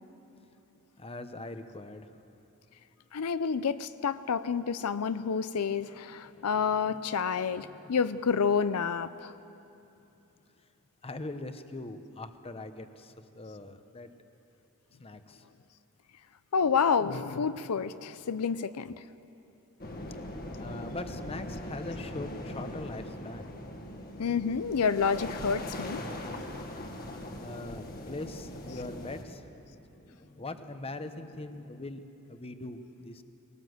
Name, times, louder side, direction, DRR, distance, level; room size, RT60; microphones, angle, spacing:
voice 1, 1.0-2.2 5.8-8.0 11.0-14.1 15.0-15.4 20.6-23.6 24.1-24.2 26.8-33.2, left 2 dB, 25° left, 9 dB, 0.9 m, -42 dB
voice 2, 3.1-9.3 16.5-19.0 24.2-26.0 28.7-28.8, left 6 dB, 85° left, 13 dB, 0.5 m, -29 dB
sound 1, 19.8-29.2, left 1 dB, 45° left, 1.7 m, -40 dB
21.5 x 18.0 x 7.9 m, 2.8 s
head